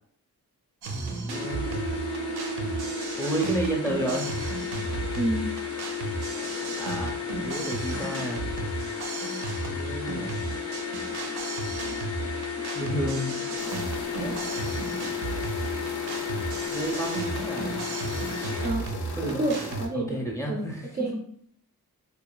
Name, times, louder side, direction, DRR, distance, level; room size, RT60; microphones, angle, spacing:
sound 1, 0.8-19.9, right 3 dB, 85° right, 0.5 m, -35 dB
voice 1, 0.9-1.7 3.2-4.3 6.8-8.4 9.7-10.4 12.7-13.4 14.2-14.6 16.7-17.8 19.1-19.7 19.9-21.1, right 1 dB, 10° left, -1 dB, 0.7 m, -32 dB
sound 2, 1.3-18.7, left 5 dB, 40° left, 0.6 m, -33 dB
voice 2, 5.1-5.5 18.6-18.8 19.2-20.2 20.5-20.6 21.0-21.2, right 1 dB, 25° right, -2 dB, 0.3 m, -28 dB
sound 3, 13.6-19.9, left 2 dB, 85° left, 0.5 m, -39 dB
2.9 x 2.2 x 2.3 m, 0.64 s
wide cardioid pair, 75°, 37 cm